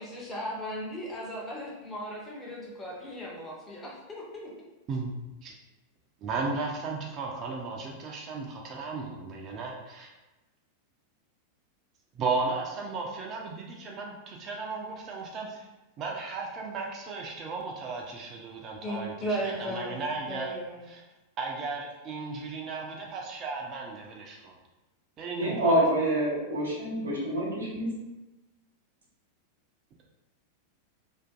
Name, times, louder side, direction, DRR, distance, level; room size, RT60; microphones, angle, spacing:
voice 1, 0.0-4.5 18.8-20.0 20.3-20.9, equal, 15° left, -4 dB, 0.7 m, -36 dB
voice 2, 6.2-10.1 12.1-15.7 16.0-20.5 20.9-21.0 21.4-24.5 25.2-25.9, right 4 dB, 30° right, 0 dB, 0.4 m, -35 dB
voice 3, 25.3-27.9, right 1 dB, 70° right, -4 dB, 0.9 m, -26 dB
2.4 x 2.4 x 2.4 m, 1.1 s
figure-of-eight pair, 90°, 0 cm